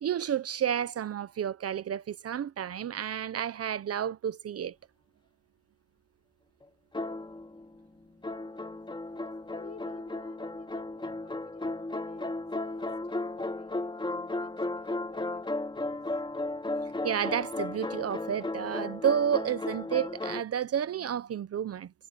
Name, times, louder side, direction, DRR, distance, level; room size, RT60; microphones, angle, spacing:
voice 1, 0.0-4.7 17.0-21.9, right 9 dB, 50° right, 1.0 m, -31 dB
sound 1, 6.9-7.8 8.2-20.4, left 2 dB, 15° left, 2.8 m, -35 dB
voice 2, 9.6-16.2, left 8 dB, 55° left, 7.8 m, -56 dB
cardioid pair, 90°, 30 cm